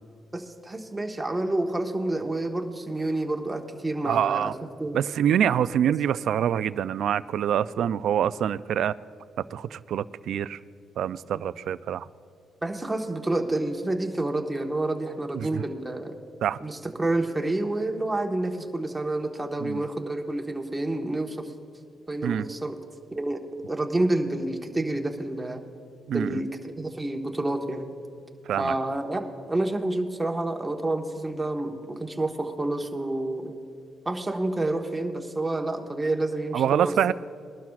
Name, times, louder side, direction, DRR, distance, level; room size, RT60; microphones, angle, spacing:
voice 1, 0.3-4.5 4.8-5.0 11.3-11.4 12.6-16.1 16.6-21.5 22.1-22.8 23.1-23.4 23.7-25.6 26.1-27.9 28.6-33.5 34.0-37.1, right 2 dB, 15° right, 2 dB, 1.3 m, -29 dB
voice 2, 4.0-4.5 4.9-8.9 9.5-10.6 11.0-12.1 15.3-15.6 16.4-16.6 19.6-19.8 22.2-22.5 26.1-26.4 28.5-28.7 36.5-37.1, right 9 dB, 70° right, 16 dB, 0.3 m, -25 dB
21.5 x 12.0 x 2.4 m, 2.5 s
cardioid pair, 90°, 0 cm